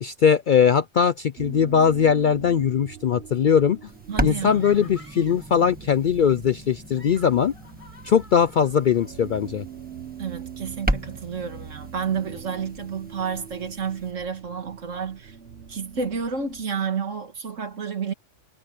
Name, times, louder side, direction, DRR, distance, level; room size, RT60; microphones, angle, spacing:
voice 1, 0.0-3.9 4.2-7.5 8.0-9.6, left 7 dB, 60° left, 0.5 m, -20 dB
sound 1, 1.4-16.6, right 8 dB, 55° right, 1.4 m, -43 dB
sound 2, 3.9-14.1, right 1 dB, 5° right, 1.4 m, -35 dB
voice 2, 4.1-4.7 10.2-15.4 15.7-18.1, right 6 dB, 75° right, 2.1 m, -30 dB
sound 3, 4.6-5.6 6.7-9.1, left 2 dB, 25° left, 5.0 m, -49 dB
omnidirectional pair, 1.3 m